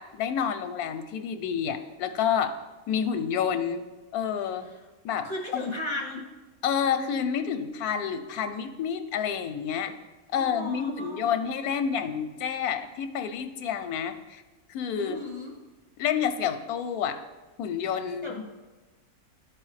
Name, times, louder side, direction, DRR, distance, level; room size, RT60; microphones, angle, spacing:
voice 1, 0.0-2.5 2.9-3.8 4.1-4.7 5.0-5.3 5.5-5.6 6.6-9.9 10.3-14.4 14.7-15.2 16.0-17.2 17.6-18.4, left 8 dB, 90° left, 9 dB, 1.1 m, -29 dB
voice 2, 5.2-6.2 10.3-11.4 15.0-15.5 18.2-18.4, left 2 dB, 20° right, -2 dB, 1.2 m, -35 dB
12.5 x 4.8 x 3.2 m, 1.2 s
omnidirectional pair, 1.6 m